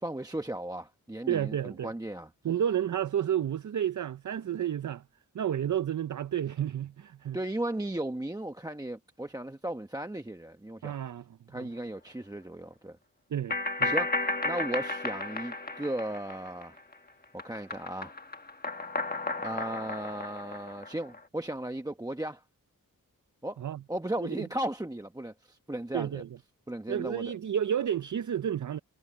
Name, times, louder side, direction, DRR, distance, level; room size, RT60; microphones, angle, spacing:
voice 1, 0.0-2.3 7.3-10.9 11.5-13.0 13.8-16.8 17.3-18.1 19.4-22.4 23.4-23.6 23.9-26.2 26.7-27.3, right 1 dB, 10° right, 1.0 m, -36 dB
voice 2, 1.3-1.9 2.4-5.0 5.3-7.4 10.8-11.7 13.3-13.9 23.6-23.8 24.2-24.4 25.9-26.3 26.9-28.8, right 9 dB, 55° right, 0.5 m, -31 dB
sound 1, 13.5-16.9 17.2-21.2, left 2 dB, 25° left, 1.5 m, -33 dB
wide cardioid pair, 120°, 35 cm